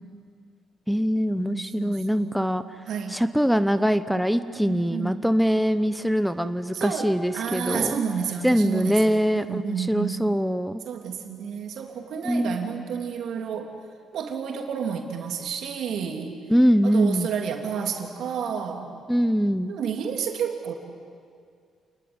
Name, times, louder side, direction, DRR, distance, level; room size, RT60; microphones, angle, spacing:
voice 1, 0.9-2.6 3.1-8.0 8.4-10.8 12.2-12.7 16.5-17.3 19.1-19.7, equal, ahead, 10 dB, 0.9 m, -23 dB
voice 2, 1.4-2.6 2.9-3.2 4.5-5.3 6.7-10.3 10.8-13.7 14.1-16.4 16.8-19.0 19.7-20.7, right 7 dB, 75° right, 3 dB, 3.3 m, -30 dB
29.0 x 20.5 x 9.9 m, 2.2 s
cardioid pair, 90°, 0 cm